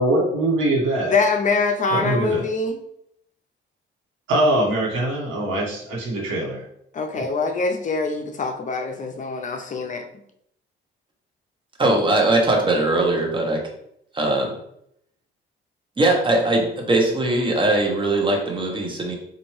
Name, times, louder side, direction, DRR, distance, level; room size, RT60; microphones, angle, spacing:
voice 1, 0.0-1.1 1.9-2.4 4.3-6.6 7.1-7.3, right 1 dB, 85° right, -3 dB, 1.4 m, -22 dB
voice 2, 1.1-2.8 6.9-10.0, left 4 dB, 40° left, 5 dB, 0.5 m, -24 dB
voice 3, 11.8-13.6 14.1-14.5 16.0-19.2, right 2 dB, 25° right, 1 dB, 1.0 m, -20 dB
4.1 x 2.6 x 3.2 m, 0.73 s
cardioid pair, 90°, 20 cm